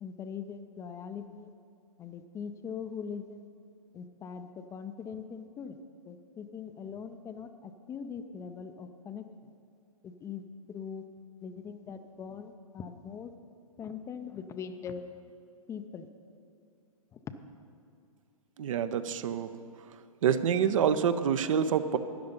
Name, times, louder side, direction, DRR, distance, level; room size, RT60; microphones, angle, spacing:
voice 1, 0.0-1.5 2.0-3.4 3.9-5.8 6.1-7.5 7.9-9.2 10.0-10.4 10.7-11.0 11.4-13.3 13.8-15.0 15.7-16.1 17.1-17.2, left 6 dB, 15° left, 9 dB, 0.4 m, -41 dB
voice 2, 18.6-19.5 20.2-22.0, right 8 dB, 60° right, 11 dB, 0.7 m, -27 dB
12.5 x 9.5 x 5.3 m, 2.6 s
hypercardioid pair, 120°, 19 cm